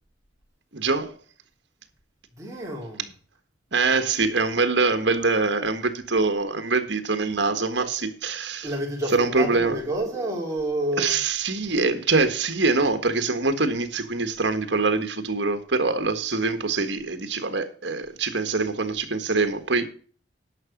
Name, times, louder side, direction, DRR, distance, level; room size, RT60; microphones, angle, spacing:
voice 1, 0.7-1.2 3.7-8.7 9.1-9.8 11.0-19.8, right 3 dB, 70° right, 1.6 m, -24 dB
voice 2, 2.3-3.1 8.6-11.2, right 1 dB, 15° right, 4.0 m, -29 dB
11.0 x 6.2 x 7.2 m
head